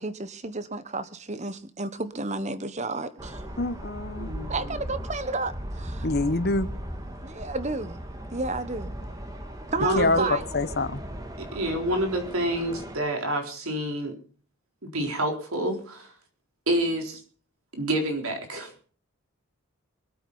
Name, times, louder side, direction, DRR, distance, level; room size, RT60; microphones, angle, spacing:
voice 1, 0.0-3.4 4.5-6.1 7.2-8.0 8.3-8.9 9.7-10.4, right 3 dB, 30° right, 1.1 m, -32 dB
sound 1, 3.2-13.0, equal, 15° right, 1.7 m, -37 dB
voice 2, 3.6-4.3 6.0-6.7 10.0-11.0, left 2 dB, 45° left, 1.0 m, -26 dB
voice 3, 4.2-4.8 9.8-10.3 11.4-14.1 14.8-16.1 16.7-17.2 17.8-18.7, right 1 dB, 75° right, 4.1 m, -28 dB
24.0 x 8.4 x 5.6 m
head